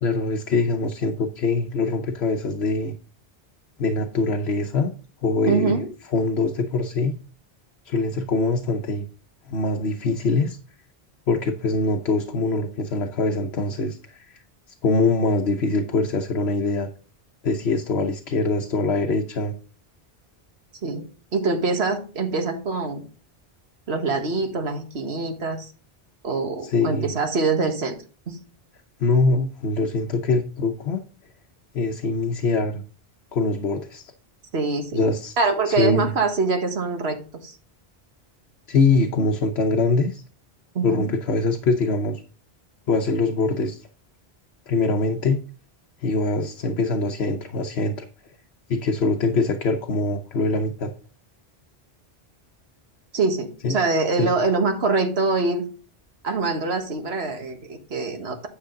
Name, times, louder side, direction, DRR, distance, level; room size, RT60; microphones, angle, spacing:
voice 1, 0.0-2.9 3.8-4.9 5.2-5.8 6.1-7.1 7.8-9.1 9.5-10.6 11.3-14.4 14.8-16.9 17.4-19.5 26.6-27.1 29.0-31.0 31.7-32.8 33.3-34.1 34.9-35.4 35.7-36.1 38.7-40.2 40.8-42.2 42.9-43.9 44.7-45.4 46.0-48.1 48.7-50.9 53.6-53.7 54.2-54.3, left 3 dB, 75° left, 4 dB, 1.1 m, -23 dB
voice 2, 5.5-5.9 20.8-21.0 21.3-23.0 23.9-25.7 26.2-28.0 28.3-28.4 34.5-35.1 35.4-37.2 37.4-37.6 40.7-41.1 53.1-55.6 56.2-58.5, right 3 dB, 80° right, 5 dB, 1.7 m, -24 dB
10.0 x 6.6 x 3.8 m, 0.38 s
omnidirectional pair, 1.1 m